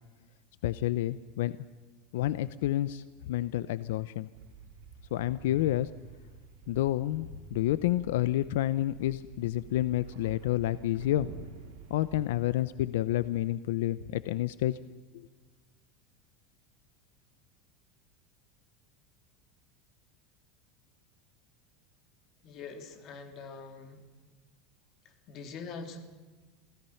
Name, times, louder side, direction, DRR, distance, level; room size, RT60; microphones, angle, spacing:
voice 1, 0.6-1.5 2.1-4.3 5.1-5.9 6.7-11.3 11.9-14.8, left 14 dB, 85° left, 15 dB, 0.7 m, -29 dB
sound 1, 4.3-12.2, right 5 dB, 70° right, 5.0 m, -48 dB
voice 2, 22.4-24.0 25.3-26.0, left 4 dB, 40° left, 7 dB, 3.0 m, -43 dB
28.0 x 17.5 x 5.8 m, 1.3 s
supercardioid pair, 155°, 0 cm